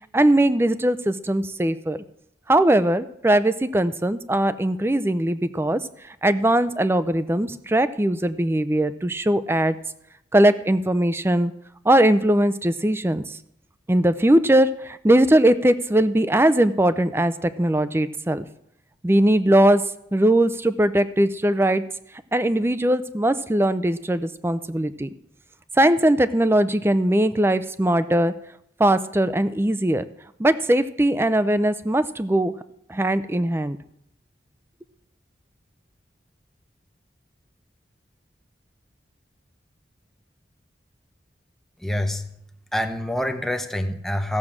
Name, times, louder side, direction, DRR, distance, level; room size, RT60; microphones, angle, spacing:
voice 1, 0.1-2.0 2.5-5.8 6.1-9.8 10.3-11.5 11.8-13.4 13.9-18.4 19.0-19.8 20.1-21.8 22.3-25.1 25.8-28.3 28.8-30.0 30.4-32.5 32.9-33.8, right 1 dB, 15° right, 13 dB, 0.5 m, -20 dB
voice 2, 41.8-42.3 42.7-44.4, left 1 dB, ahead, 6 dB, 0.9 m, -26 dB
15.0 x 6.4 x 7.3 m, 0.76 s
head